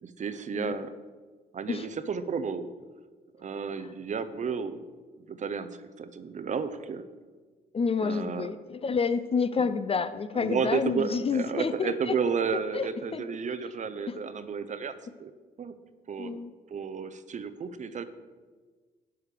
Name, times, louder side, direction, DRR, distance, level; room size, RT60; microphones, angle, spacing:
voice 1, 0.0-0.9 1.5-2.7 3.4-4.8 5.2-7.0 8.0-8.5 10.3-15.3 15.6-15.7 16.1-16.4 16.7-18.0, right 5 dB, 35° right, 11 dB, 0.7 m, -32 dB
voice 2, 7.7-12.2 12.7-13.2 14.1-14.2 16.2-16.5, left 5 dB, 30° left, 12 dB, 0.5 m, -29 dB
11.0 x 4.8 x 5.0 m, 1.4 s
hypercardioid pair, 50°, 20 cm